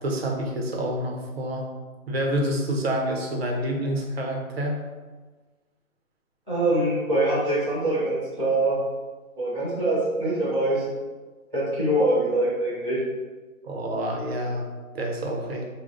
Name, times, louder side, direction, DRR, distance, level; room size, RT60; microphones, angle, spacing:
voice 1, 0.0-1.6 2.1-4.8 13.6-14.6 14.9-15.6, equal, 45° right, 1 dB, 0.7 m, -27 dB
voice 2, 6.5-8.8 9.4-10.8 11.5-13.0, right 1 dB, ahead, -25 dB, 0.6 m, -24 dB
3.7 x 2.3 x 3.7 m, 1.3 s
hypercardioid pair, 165°, 42 cm